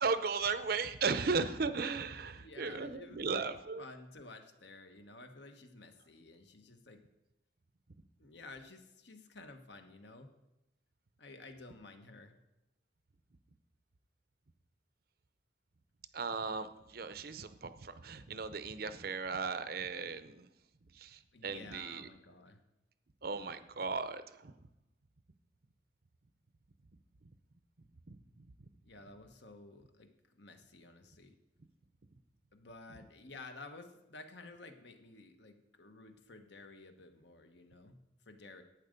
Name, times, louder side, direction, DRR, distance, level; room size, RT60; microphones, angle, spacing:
voice 1, 0.0-3.8 16.1-20.5 21.0-22.1 23.2-24.5 28.1-28.2, right 4 dB, 50° right, 12 dB, 0.6 m, -36 dB
voice 2, 2.3-7.0 8.2-10.3 11.2-12.4 21.3-22.6 28.8-31.3 32.5-38.0 38.2-38.6, left 3 dB, 65° left, 6 dB, 1.2 m, -53 dB
11.0 x 9.0 x 5.2 m, 0.93 s
head